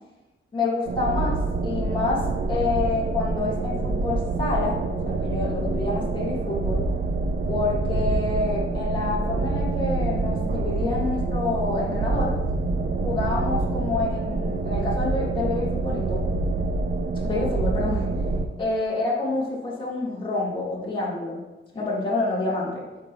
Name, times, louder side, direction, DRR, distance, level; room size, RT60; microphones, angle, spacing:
voice 1, 0.5-4.8 5.1-6.9 7.5-12.4 13.0-16.2 17.2-18.1 18.6-21.4 21.7-22.9, left 3 dB, 25° left, -6 dB, 1.9 m, -28 dB
sound 1, 0.9-18.5, right 3 dB, 50° right, 0.6 m, -26 dB
13.0 x 5.3 x 3.0 m, 1.1 s
wide cardioid pair, 170°, 20 cm